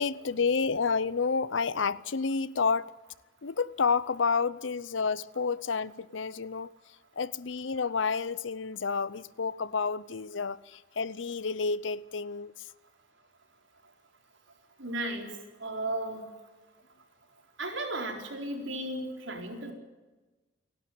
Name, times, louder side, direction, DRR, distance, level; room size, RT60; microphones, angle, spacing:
voice 1, 0.0-2.9 3.4-6.7 7.2-12.7, left 5 dB, 80° left, 0.7 m, -30 dB
voice 2, 14.8-16.5 17.6-19.7, right 1 dB, 85° right, 4.3 m, -35 dB
29.5 x 12.0 x 9.4 m
head